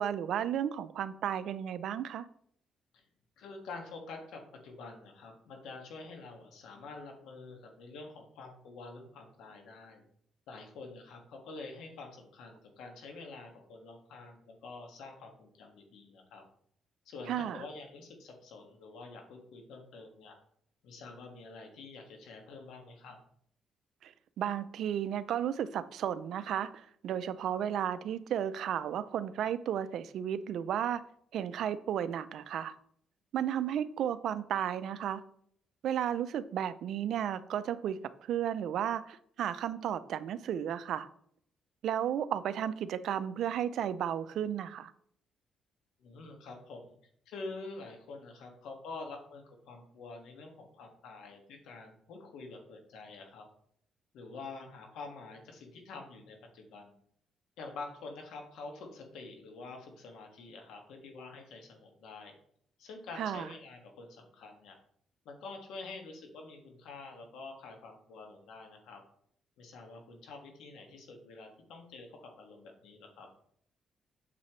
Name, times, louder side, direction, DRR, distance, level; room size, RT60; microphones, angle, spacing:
voice 1, 0.0-2.2 17.3-17.6 24.0-31.0 31.3-32.7 33.3-35.2 35.8-38.0 38.3-41.1 41.8-44.9 63.2-63.5, right 9 dB, 75° right, 14 dB, 0.5 m, -33 dB
voice 2, 3.4-10.0 10.5-16.4 17.1-20.4 20.8-23.2 46.0-46.9 47.3-53.4 54.1-56.9 57.6-62.4 62.8-64.8 65.3-69.0 69.6-73.3, left 3 dB, 85° left, 3 dB, 1.9 m, -47 dB
8.4 x 6.9 x 3.2 m, 0.65 s
cardioid pair, 90°, 0 cm